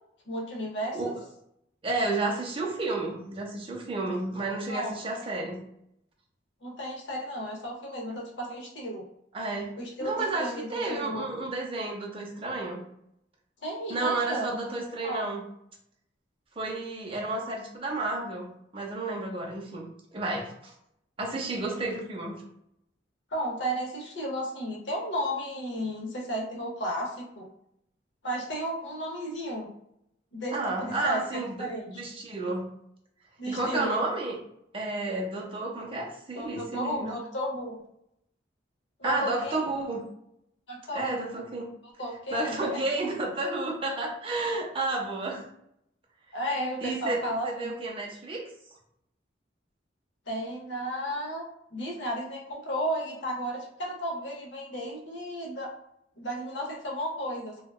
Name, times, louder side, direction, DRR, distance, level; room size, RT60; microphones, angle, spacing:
voice 1, 0.3-1.1 4.7-4.9 6.6-9.1 9.8-11.3 13.6-14.6 15.0-15.3 23.3-27.5 28.2-29.7 30.3-32.0 33.4-33.9 36.3-37.8 39.0-39.6 40.7-41.2 42.0-42.8 46.3-47.7 50.3-51.4 51.7-55.7 56.2-57.6, equal, 70° left, -1 dB, 0.7 m, -33 dB
voice 2, 1.8-5.6 9.3-9.7 10.0-12.8 13.9-15.4 16.6-20.7 21.2-22.4 30.5-32.7 33.5-34.4 34.7-37.2 39.0-40.0 40.9-41.7 42.3-45.4 46.8-48.5, right 2 dB, 30° right, -1 dB, 0.5 m, -31 dB
2.8 x 2.2 x 2.2 m, 0.75 s
head